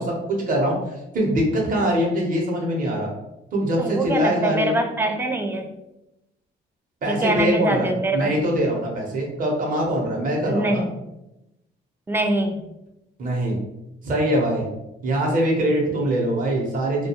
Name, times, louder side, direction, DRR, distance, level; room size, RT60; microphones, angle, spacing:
voice 1, 0.0-3.1 3.5-4.8 7.0-7.9 8.1-10.8 13.2-13.6 14.0-14.7 15.0-17.1, right 1 dB, 45° right, -2 dB, 0.8 m, -23 dB
voice 2, 3.8-5.7 7.1-8.4 10.5-10.9 12.1-12.7, right 1 dB, 10° right, 4 dB, 0.3 m, -24 dB
2.3 x 2.2 x 2.8 m, 0.90 s
cardioid pair, 90°, 20 cm